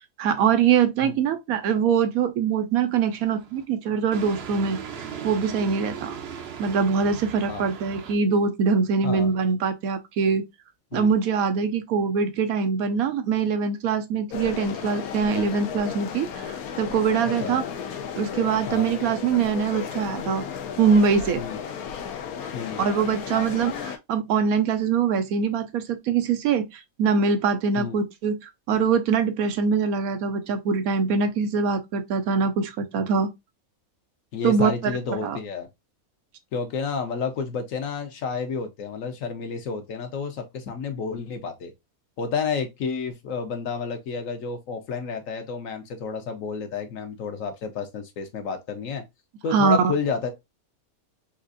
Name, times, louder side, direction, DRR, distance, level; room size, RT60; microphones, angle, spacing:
voice 1, 0.2-4.8 5.2-6.2 6.6-10.4 10.9-17.7 18.2-20.4 20.8-21.4 22.8-33.3 34.4-34.7 35.1-35.4 49.5-49.9, right 6 dB, 85° right, 1.1 m, -23 dB
sound 1, 3.0-3.6 4.1-8.1, right 7 dB, 60° right, 0.7 m, -38 dB
sound 2, 14.3-24.0, left 7 dB, 90° left, 1.1 m, -34 dB
voice 2, 34.3-35.7 36.5-41.7 42.2-49.0 49.4-50.3, left 5 dB, 70° left, 1.1 m, -30 dB
4.5 x 2.4 x 2.5 m
omnidirectional pair, 1.5 m